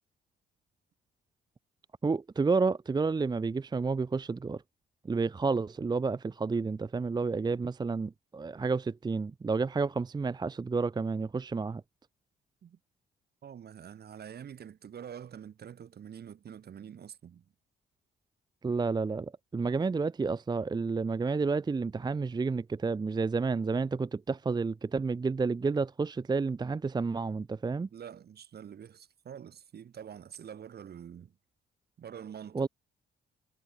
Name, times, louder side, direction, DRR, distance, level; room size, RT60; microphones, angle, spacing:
voice 1, 2.0-4.6 5.0-11.8 18.6-27.9 32.5-32.7, right 4 dB, 20° right, 0.6 m, -30 dB
voice 2, 13.4-17.5 27.9-31.3 32.0-32.7, right 8 dB, 55° right, 2.1 m, -46 dB
cardioid pair, 90°, 20 cm